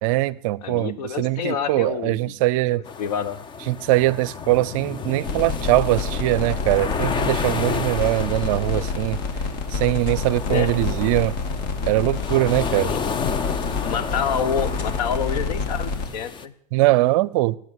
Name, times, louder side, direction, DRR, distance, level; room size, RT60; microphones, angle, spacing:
voice 1, 0.0-2.8 3.7-9.2 9.7-11.3 11.8-12.9 16.7-17.6, right 18 dB, 55° right, 22 dB, 0.6 m, -21 dB
voice 2, 0.6-2.4 2.7-3.4 10.4-10.7 12.7-13.0 13.8-16.5, left 7 dB, 70° left, 12 dB, 1.5 m, -28 dB
sound 1, 2.9-16.4, left 6 dB, 20° left, 0.8 m, -31 dB
sound 2, 5.2-16.1, left 4 dB, 45° left, 2.8 m, -28 dB
18.0 x 8.0 x 8.1 m, 0.67 s
hypercardioid pair, 120°, 21 cm